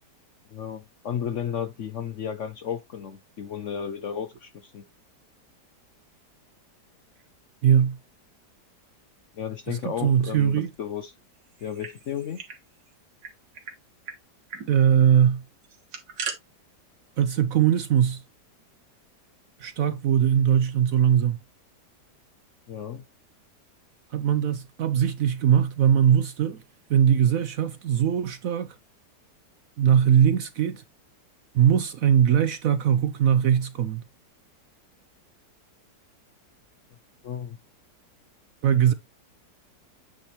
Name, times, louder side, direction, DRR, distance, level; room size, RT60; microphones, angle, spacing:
voice 1, 0.5-4.8 9.3-11.1 11.6-12.4 22.7-23.0 37.2-37.6, left 8 dB, 60° left, 0.8 m, -33 dB
voice 2, 7.6-8.0 9.7-10.7 14.7-15.4 17.2-18.2 19.6-21.4 24.1-26.6 26.9-28.8 29.8-30.8 31.5-34.0 38.6-38.9, right 9 dB, 65° right, 0.9 m, -21 dB
sound 1, 11.5-12.6 12.9-13.0 13.2-13.8 14.1-14.2 14.5-14.7 15.6-16.4, right 6 dB, 85° right, 2.1 m, -37 dB
8.8 x 3.1 x 4.3 m
omnidirectional pair, 1.9 m